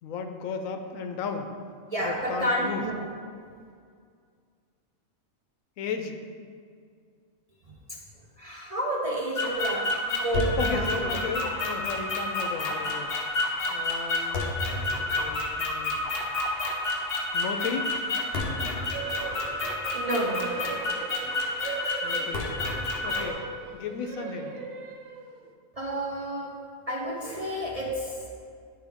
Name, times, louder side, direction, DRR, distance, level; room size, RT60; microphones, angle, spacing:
voice 1, 0.0-1.5 2.0-2.8 5.8-6.2 10.6-13.4 13.7-16.0 17.3-17.9 22.0-22.5 23.0-23.4 23.7-24.6, left 5 dB, 80° left, 6 dB, 1.0 m, -34 dB
voice 2, 1.9-3.1 7.9-8.0 8.4-11.2 19.9-20.8 21.6-22.5 25.8-26.6 26.9-28.2, right 1 dB, 40° right, -3 dB, 0.5 m, -31 dB
sound 1, 9.4-23.3, left 2 dB, 55° left, 0.9 m, -29 dB
sound 2, 18.9-25.5, right 5 dB, 80° right, 1.0 m, -39 dB
9.0 x 4.6 x 3.5 m, 2.2 s
omnidirectional pair, 1.4 m